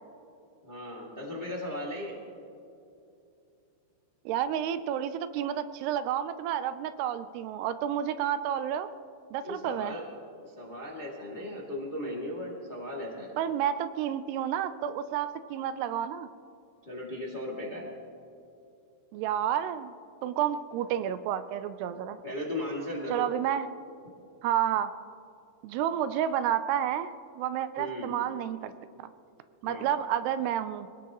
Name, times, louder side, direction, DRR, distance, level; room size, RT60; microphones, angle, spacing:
voice 1, 0.6-2.2 9.4-10.0 10.5-13.3 16.8-17.9 22.2-23.3 27.8-28.1 29.6-29.9, left 1 dB, 25° left, -3 dB, 1.0 m, -37 dB
voice 2, 4.3-8.9 9.3-10.0 13.4-16.3 19.1-19.9 20.2-22.2 23.1-23.7 24.4-24.9 25.6-28.7 29.6-30.9, right 10 dB, 80° right, 12 dB, 2.4 m, -30 dB
25.5 x 17.5 x 3.0 m, 2.6 s
omnidirectional pair, 5.1 m